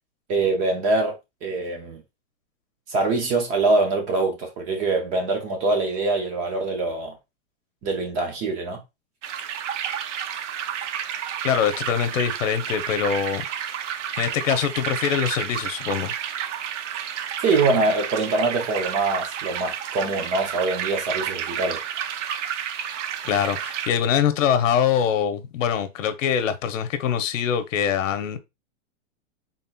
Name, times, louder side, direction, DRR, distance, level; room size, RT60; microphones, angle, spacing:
voice 1, 0.3-2.0 2.9-7.2 7.8-8.8 17.4-21.8, right 3 dB, 20° right, 0.6 m, -24 dB
sound 1, 9.2-23.9, right 9 dB, 70° right, 0.7 m, -31 dB
voice 2, 11.4-13.4 14.2-16.1 23.2-28.4, left 8 dB, 85° left, 0.9 m, -23 dB
4.2 x 3.8 x 2.2 m
supercardioid pair, 175°, 38 cm